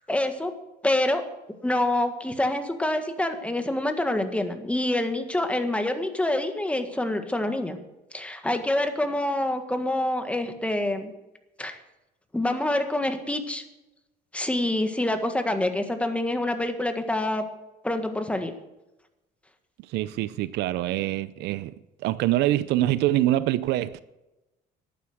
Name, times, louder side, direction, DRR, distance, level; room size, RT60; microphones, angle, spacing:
voice 1, 0.1-0.5 0.8-1.2 1.6-7.8 8.1-11.1 11.6-11.8 12.3-13.6 14.3-17.5 17.8-18.5, left 1 dB, 5° left, 1.6 m, -26 dB
voice 2, 19.9-21.7 22.0-24.0, right 15 dB, 85° right, 0.6 m, -25 dB
11.5 x 9.3 x 7.9 m
cardioid pair, 110°, 17 cm